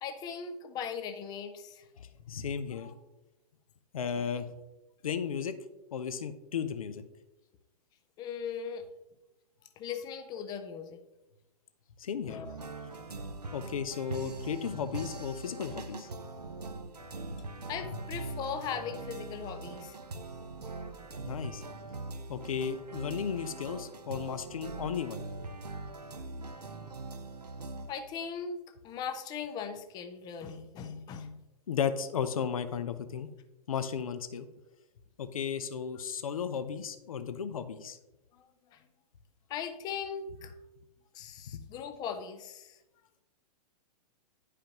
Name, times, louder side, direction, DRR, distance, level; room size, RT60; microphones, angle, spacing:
voice 1, 0.0-1.8 2.7-2.9 4.1-4.3 8.2-8.9 9.8-11.0 12.2-12.5 17.7-20.0 27.9-28.6 28.8-31.4 38.7-38.8 39.5-40.5 41.1-42.8, left 7 dB, 20° left, 8 dB, 0.5 m, -39 dB
voice 2, 2.0-2.9 3.9-4.5 5.0-5.6 5.9-7.0 12.0-12.4 13.5-16.1 21.3-21.6 22.3-25.2 31.7-33.3 33.7-34.5 35.2-38.0 41.5-41.6, left 7 dB, 60° left, 11 dB, 0.7 m, -34 dB
sound 1, 12.4-27.9, right 3 dB, 80° right, 0.8 m, -42 dB
10.0 x 5.0 x 2.9 m, 0.97 s
figure-of-eight pair, 110°, 20 cm